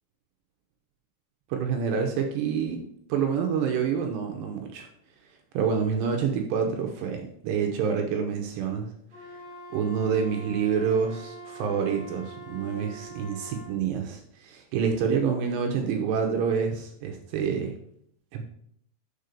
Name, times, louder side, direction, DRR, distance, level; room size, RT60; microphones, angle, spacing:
voice 1, 1.5-2.8 3.1-4.9 5.5-8.9 9.7-17.7 18.3-18.4, right 6 dB, 75° right, 3 dB, 2.8 m, -27 dB
Wind instrument woodwind instrument, 9.1-13.7, right 2 dB, 15° right, 1.4 m, -44 dB
6.8 x 5.4 x 6.7 m, 0.68 s
omnidirectional pair, 5.5 m